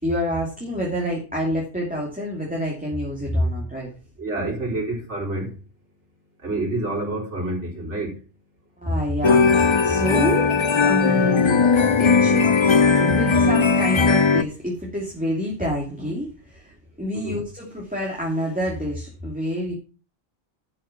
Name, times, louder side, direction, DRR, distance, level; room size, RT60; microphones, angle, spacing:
voice 1, 0.0-3.9 8.8-10.5 10.8-11.6 12.0-16.7 17.0-19.7, equal, 5° right, -3 dB, 2.8 m, -27 dB
voice 2, 4.2-5.5 6.4-8.1 17.1-17.4, right 2 dB, 75° right, 0 dB, 4.2 m, -28 dB
sound 1, 9.2-14.4, left 5 dB, 50° left, 0.3 m, -18 dB
11.5 x 6.3 x 5.9 m, 0.34 s
omnidirectional pair, 1.2 m